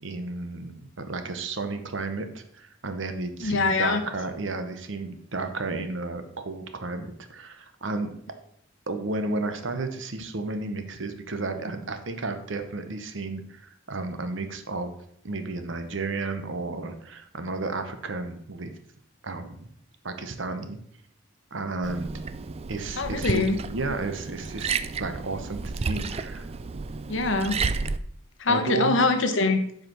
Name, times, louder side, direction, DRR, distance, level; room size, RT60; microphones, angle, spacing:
voice 1, 0.0-8.1 8.9-14.9 15.2-18.7 19.2-19.7 20.0-20.8 21.5-22.2 22.7-26.5 28.5-29.0, right 3 dB, 65° right, 8 dB, 1.0 m, -32 dB
voice 2, 3.4-4.0 23.0-23.5 27.1-27.5 28.4-29.6, left 3 dB, 65° left, 6 dB, 1.1 m, -23 dB
Liquid, 21.8-28.0, right 4 dB, 30° right, 0.3 m, -32 dB
7.8 x 4.9 x 6.0 m, 0.68 s
head